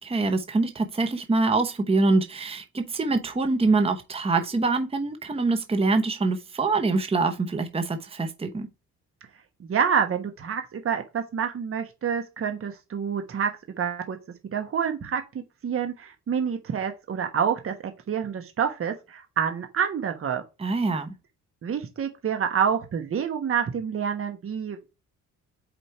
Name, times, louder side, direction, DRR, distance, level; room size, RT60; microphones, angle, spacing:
voice 1, 0.0-8.7 20.6-21.1, right 3 dB, 20° right, 0.9 m, -24 dB
voice 2, 9.6-14.2 14.5-15.2 15.6-17.7 18.1-20.4 21.6-24.9, right 7 dB, 45° right, 1.2 m, -27 dB
5.0 x 4.4 x 4.8 m
cardioid pair, 90°, 30 cm